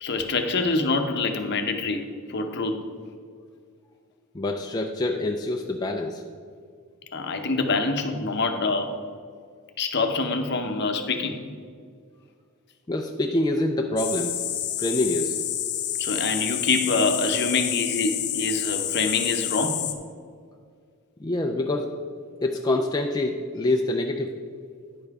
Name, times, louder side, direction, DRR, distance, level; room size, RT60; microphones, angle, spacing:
voice 1, 0.0-2.0 2.3-2.9 7.1-8.9 9.8-11.4 16.0-19.8, left 3 dB, 50° left, 6 dB, 0.7 m, -25 dB
voice 2, 4.3-6.2 12.9-14.4 14.8-15.4 21.2-21.9 22.4-24.4, left 2 dB, 20° left, 2 dB, 0.3 m, -26 dB
sound 1, 14.0-19.9, left 11 dB, 90° left, 0.8 m, -29 dB
10.0 x 5.5 x 4.7 m, 2.1 s
head